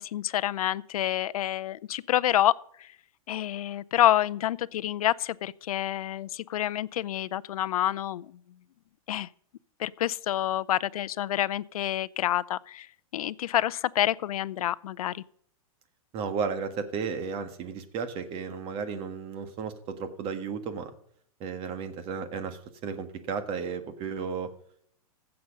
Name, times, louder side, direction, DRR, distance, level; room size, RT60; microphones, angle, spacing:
voice 1, 0.0-2.5 2.8-2.9 3.3-8.3 9.1-9.3 9.8-12.9 13.1-15.2, left 12 dB, 75° left, 0.6 m, -28 dB
voice 2, 16.1-20.9 21.4-24.5, right 5 dB, 30° right, 1.5 m, -34 dB
15.5 x 6.9 x 5.2 m
hypercardioid pair, 150°, 19 cm